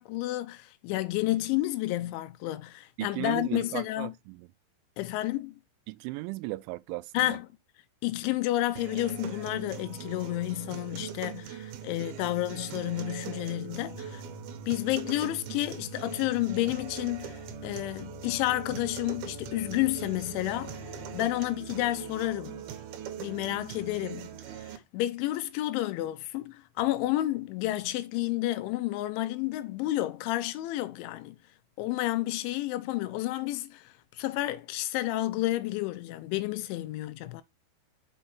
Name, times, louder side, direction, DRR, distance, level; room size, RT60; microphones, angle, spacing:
voice 1, 0.0-4.1 5.0-5.5 7.1-7.5 8.0-14.2 14.7-20.8 21.1-22.6 23.2-24.4 24.7-31.4 31.8-37.4, left 16 dB, 90° left, 3.0 m, -30 dB
voice 2, 3.0-4.5 5.9-7.4, right 22 dB, 90° right, 3.0 m, -36 dB
sound 1, 8.8-24.8, right 10 dB, 70° right, 2.5 m, -41 dB
sound 2, 13.9-21.2, left 22 dB, 70° left, 3.0 m, -48 dB
6.3 x 5.4 x 4.2 m
omnidirectional pair, 5.4 m